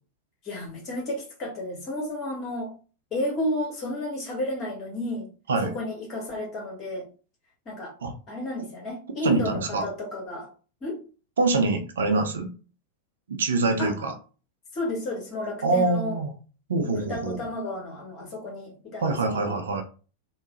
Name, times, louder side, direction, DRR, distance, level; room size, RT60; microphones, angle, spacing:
voice 1, 0.4-2.7 3.1-5.3 5.6-7.1 7.6-7.9 8.3-10.5 10.8-11.0 13.8-14.0 14.7-16.2 16.8-19.1 19.4-19.6, left 1 dB, 30° left, 1.7 m, -32 dB
voice 2, 9.2-9.8 11.4-12.5 13.3-14.1 15.6-16.3 16.7-17.4 19.0-19.8, right 3 dB, 65° right, 0.6 m, -25 dB
3.1 x 2.2 x 3.1 m
figure-of-eight pair, 90°, 0 cm